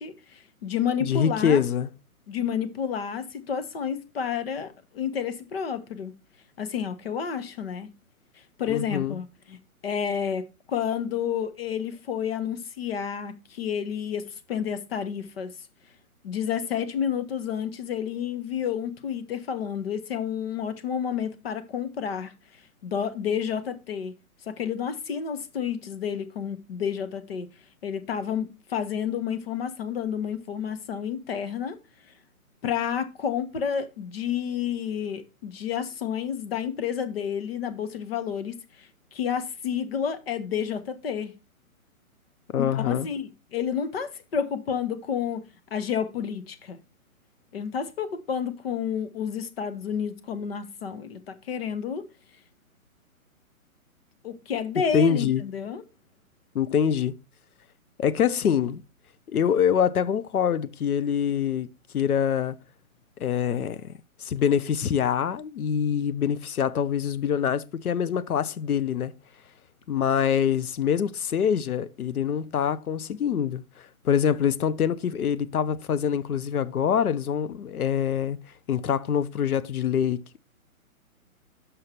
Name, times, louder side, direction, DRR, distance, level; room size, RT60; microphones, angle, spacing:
voice 1, 0.0-1.6 2.3-6.1 6.6-7.9 8.6-15.5 16.2-22.3 22.8-24.1 24.5-27.5 27.8-31.8 32.6-41.3 42.6-45.4 45.7-46.8 47.5-52.0 54.2-55.8, left 7 dB, 45° left, 1.0 m, -30 dB
voice 2, 1.0-1.9 8.7-9.2 42.5-43.1 54.9-55.4 56.5-57.1 58.0-58.8 59.3-61.7 61.9-62.6 63.2-63.8 64.2-69.1 69.9-73.6 74.0-78.4 78.7-80.4, left 8 dB, 85° left, 0.8 m, -25 dB
6.9 x 5.6 x 4.3 m
hypercardioid pair, 155°, 43 cm